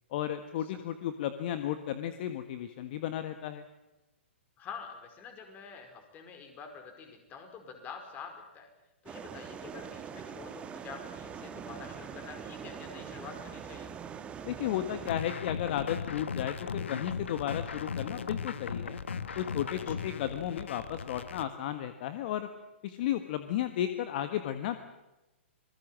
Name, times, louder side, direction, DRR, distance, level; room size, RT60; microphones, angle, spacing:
voice 1, 0.1-3.6 14.4-19.0 19.3-22.5 22.8-24.8, left 11 dB, 45° left, 10 dB, 1.5 m, -34 dB
voice 2, 4.6-8.7 9.0-13.9 19.8-20.0, left 6 dB, 25° left, 6 dB, 4.8 m, -47 dB
sound 1, 9.1-15.1, right 7 dB, 15° right, 1.5 m, -43 dB
sound 2, 15.1-21.5, left 6 dB, 75° left, 1.3 m, -37 dB
26.0 x 20.0 x 7.5 m, 1.0 s
hypercardioid pair, 125°, 7 cm